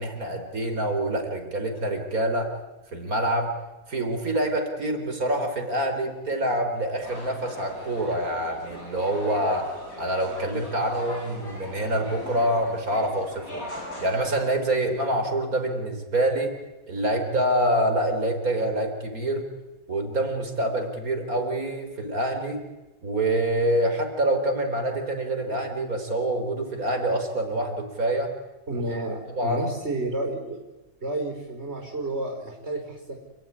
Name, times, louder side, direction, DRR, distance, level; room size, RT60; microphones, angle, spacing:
voice 1, 0.0-2.5 2.9-3.5 3.9-13.7 14.0-16.5 16.9-19.5 19.9-22.6 23.0-28.3 28.7-29.0 29.3-29.6, right 1 dB, 85° right, 5 dB, 4.4 m, -26 dB
sound 1, 7.0-14.5, left 1 dB, 80° left, 7.4 m, -40 dB
voice 2, 28.7-30.6 31.0-33.2, right 2 dB, 50° right, 1 dB, 5.1 m, -31 dB
29.5 x 17.5 x 9.9 m, 1.1 s
omnidirectional pair, 1.5 m